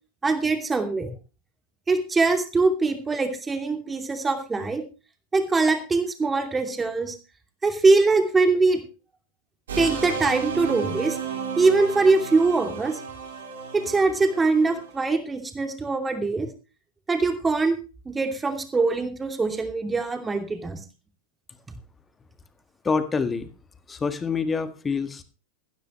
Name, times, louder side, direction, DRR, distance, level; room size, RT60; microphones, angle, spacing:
voice 1, 0.2-1.1 1.9-4.8 5.3-7.2 7.6-8.8 9.8-11.2 11.6-13.0 13.7-16.5 17.1-17.8 18.1-20.8, right 3 dB, 15° right, 6 dB, 2.7 m, -22 dB
sound 1, 9.7-15.0, right 5 dB, 65° right, 4.5 m, -33 dB
voice 2, 22.8-23.5 23.9-25.2, left 5 dB, 15° left, 11 dB, 1.7 m, -26 dB
15.0 x 13.5 x 3.1 m, 0.33 s
figure-of-eight pair, 90°, 0 cm